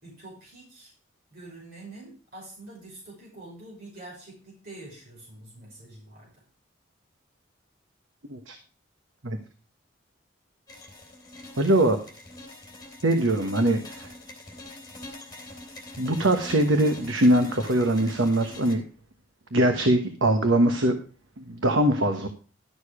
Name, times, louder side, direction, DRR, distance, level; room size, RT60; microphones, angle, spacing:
voice 1, 0.0-0.9 1.3-6.3, right 2 dB, 45° right, -3 dB, 6.0 m, -45 dB
sound 1, 10.7-18.8, left 2 dB, 20° left, 3.0 m, -44 dB
voice 2, 11.6-12.0 13.0-14.1 16.0-18.8 19.5-20.9 21.4-22.3, right 1 dB, 75° right, 6 dB, 1.2 m, -22 dB
12.0 x 6.8 x 4.9 m, 0.37 s
head